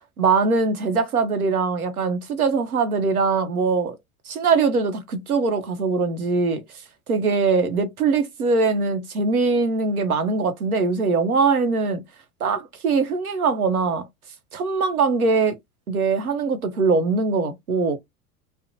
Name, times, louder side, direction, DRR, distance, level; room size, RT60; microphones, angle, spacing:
voice 1, 0.2-4.0 4.3-6.6 7.1-12.0 12.4-14.0 14.5-15.6 15.9-18.0, right 4 dB, 90° right, 0.8 m, -22 dB
2.5 x 2.0 x 2.7 m
hypercardioid pair, 80°, 42 cm